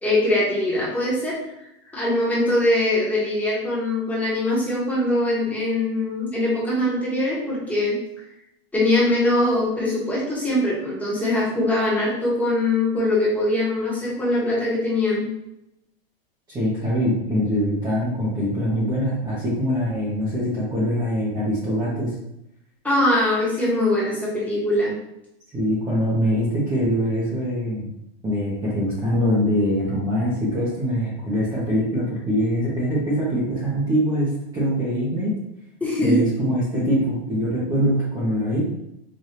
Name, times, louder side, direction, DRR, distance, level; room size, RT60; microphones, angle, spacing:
voice 1, 0.0-1.3 1.9-8.0 8.7-15.3 22.8-24.9 35.8-36.2, left 1 dB, 5° left, -7 dB, 1.2 m, -22 dB
voice 2, 16.5-22.1 25.5-27.9 28.2-35.3 36.0-38.6, equal, 10° right, -8 dB, 0.9 m, -23 dB
5.1 x 2.6 x 2.9 m, 0.84 s
supercardioid pair, 155°, 31 cm